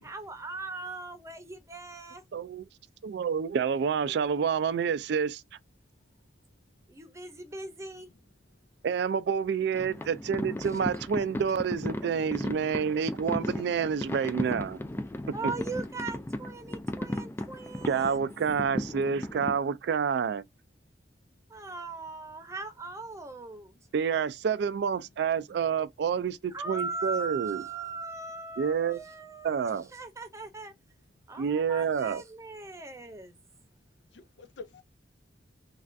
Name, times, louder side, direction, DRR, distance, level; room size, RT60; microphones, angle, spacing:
voice 1, 0.0-2.2 6.9-8.1 15.3-18.2 21.5-23.8 26.5-30.7 31.3-33.3, right 3 dB, 15° right, 0.7 m, -39 dB
voice 2, 2.3-2.7 3.0-5.4 8.8-14.8 15.4-15.5 17.9-20.4 23.9-27.6 28.6-29.0 29.4-29.9 31.4-32.2, right 6 dB, 65° right, 0.3 m, -28 dB
sound 1, 9.7-19.6, left 1 dB, 15° left, 0.3 m, -36 dB
voice 3, 31.7-32.0 34.1-34.8, left 3 dB, 90° left, 0.6 m, -48 dB
3.2 x 2.4 x 2.4 m
head